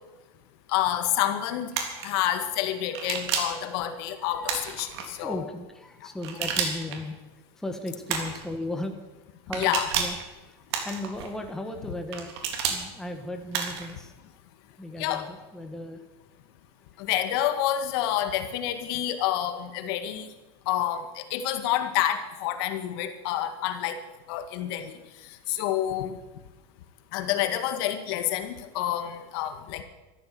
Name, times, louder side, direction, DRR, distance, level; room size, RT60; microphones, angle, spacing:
voice 1, 0.7-1.7 2.0-5.4 9.6-9.9 15.0-15.3 17.1-20.3 20.7-21.0 21.3-24.0 24.3-24.9 25.5-26.1 27.1-29.8, left 12 dB, 65° left, 8 dB, 1.8 m, -28 dB
sound 1, 1.7-2.1 2.9-3.6 4.4-5.1 6.2-7.0 8.1-8.5 9.5-10.2 10.7-11.3 12.1-12.8 13.5-13.9, right 7 dB, 85° right, 3.6 m, -30 dB
voice 2, 1.8-2.2 2.9-3.0 3.3-3.5 4.2-4.3 4.7-4.8 5.2-7.2 7.6-9.0 9.5-10.2 10.4-10.6 10.8-14.1 14.8-16.0, left 1 dB, 5° left, 4 dB, 1.5 m, -36 dB
13.5 x 13.5 x 7.7 m, 1.1 s
supercardioid pair, 155°, 14 cm